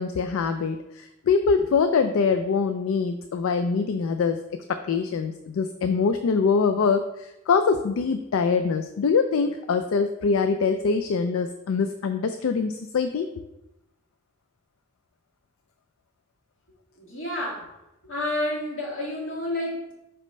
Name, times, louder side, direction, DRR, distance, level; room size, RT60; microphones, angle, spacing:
voice 1, 0.0-4.4 4.7-13.3, left 5 dB, 75° left, 8 dB, 0.4 m, -24 dB
voice 2, 17.0-17.7 18.0-19.9, left 1 dB, 60° left, -4 dB, 2.0 m, -30 dB
5.1 x 4.2 x 5.3 m, 0.94 s
head